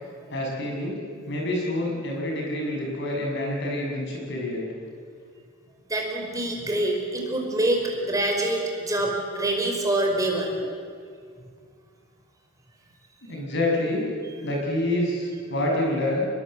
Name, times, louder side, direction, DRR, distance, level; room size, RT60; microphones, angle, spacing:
voice 1, 0.3-1.0 1.3-4.7 13.3-14.0 14.4-16.3, left 1 dB, 60° left, -1 dB, 6.9 m, -27 dB
voice 2, 5.9-10.5, right 1 dB, 15° right, 0 dB, 5.1 m, -25 dB
25.0 x 22.0 x 8.0 m, 2.2 s
head